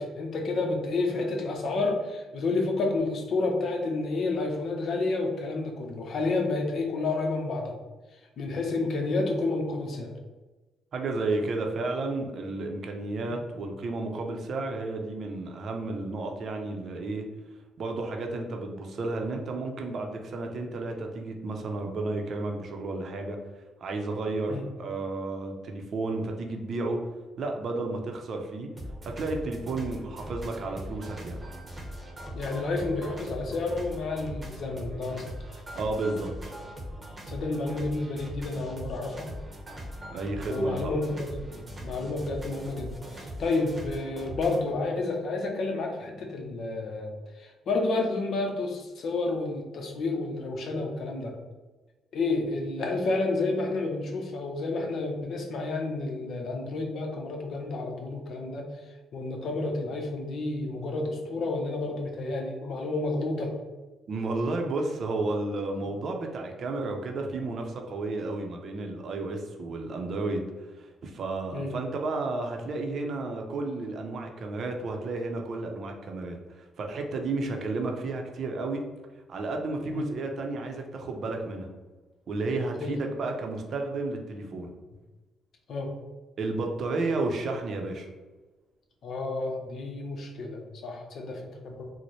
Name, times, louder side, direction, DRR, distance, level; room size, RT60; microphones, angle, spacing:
voice 1, 0.0-7.7 8.4-10.1 13.3-13.4 24.5-24.7 32.3-35.3 37.3-39.3 40.5-51.3 52.1-58.7 59.1-63.5 71.5-71.7 79.9-80.0 82.8-82.9 85.7-85.9 89.0-91.9, left 3 dB, 65° left, 2 dB, 0.7 m, -30 dB
voice 2, 10.9-17.3 17.8-23.4 23.8-27.0 27.4-28.7 29.0-31.4 35.7-36.3 40.1-40.9 64.1-70.5 70.8-78.8 79.3-81.7 82.3-84.7 86.4-88.1, right 2 dB, 55° right, 3 dB, 0.6 m, -32 dB
sound 1, 28.8-44.8, equal, 25° right, 0.8 m, -40 dB
4.1 x 2.1 x 3.1 m, 1.2 s
cardioid pair, 90°, 0 cm